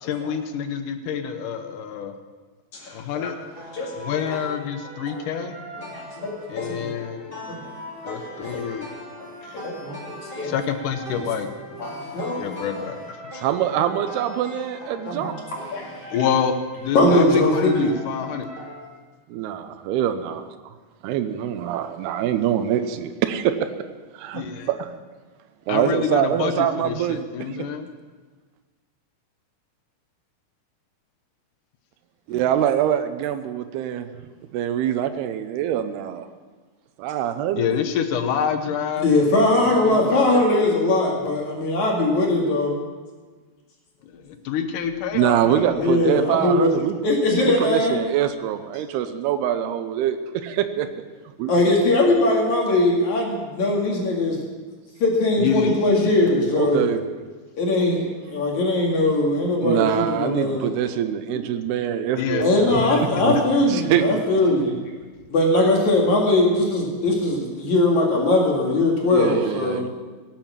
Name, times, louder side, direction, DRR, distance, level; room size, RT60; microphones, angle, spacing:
voice 1, 0.0-2.1 2.9-3.4 4.0-5.6 6.5-7.4 8.0-8.9 9.4-9.6 10.4-11.5 12.4-13.0 13.2-13.4 16.1-18.5 24.3-24.7 25.7-27.9 37.6-39.1 39.6-40.4 44.0-46.1 46.5-46.6 55.4-55.8 62.2-63.4, left 7 dB, 70° left, 7 dB, 2.1 m, -27 dB
voice 2, 2.7-3.3 3.7-3.9 5.9-6.9 7.5-7.7 8.1-8.6 9.2-10.5 11.1-11.2 11.8-12.4 15.1-16.2 16.9-17.9 39.0-42.8 45.7-46.7 47.0-47.9 51.5-54.4 55.0-56.8 57.6-60.7 62.4-64.7 65.3-69.8, left 2 dB, 55° left, -1 dB, 3.2 m, -21 dB
sound 1, 3.5-18.8, equal, 15° right, 2.6 m, -39 dB
voice 3, 13.4-15.4 19.3-20.5 21.0-23.7 24.1-24.9 25.7-27.7 32.3-34.1 34.5-36.3 37.0-37.7 45.1-47.0 47.4-51.0 51.4-51.5 56.5-57.0 59.6-62.7 63.2-63.4 63.7-64.2 69.1-69.9, right 10 dB, 90° right, 9 dB, 2.8 m, -24 dB
18.0 x 9.0 x 7.3 m, 1.4 s
omnidirectional pair, 4.5 m